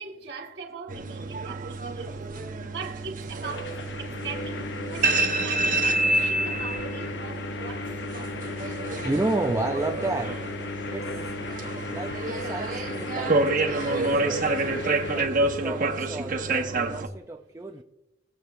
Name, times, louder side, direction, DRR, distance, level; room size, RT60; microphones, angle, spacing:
voice 1, 0.0-2.3 2.7-8.8, right 5 dB, 70° right, 1.7 m, -41 dB
sound 1, 0.9-17.1, right 2 dB, 50° right, 1.1 m, -28 dB
sound 2, 3.4-15.3, left 3 dB, 70° left, 0.7 m, -35 dB
voice 2, 9.0-10.4 10.9-11.1 11.9-14.4 15.1-17.8, right 2 dB, 15° right, 0.4 m, -32 dB
20.5 x 7.4 x 2.6 m
head